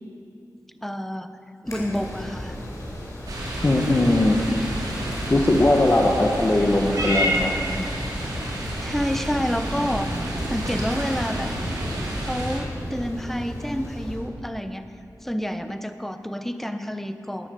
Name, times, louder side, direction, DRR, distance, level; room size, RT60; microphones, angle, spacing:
voice 1, 0.8-1.3 1.6-2.6 8.8-10.1 10.5-11.5 12.3-14.9 15.2-17.5, equal, 5° left, 9 dB, 0.8 m, -29 dB
sound 1, 1.7-14.2, left 1 dB, 55° left, 4.9 m, -36 dB
sound 2, 3.3-12.6, right 1 dB, 85° right, 3.0 m, -31 dB
voice 2, 3.6-4.4 4.9-7.6, left 1 dB, 35° left, 0 dB, 1.1 m, -20 dB
Purr / Meow, 6.9-13.4, equal, 65° right, 3.7 m, -31 dB
18.5 x 10.0 x 6.8 m, 2.6 s
wide cardioid pair, 110°, 7 cm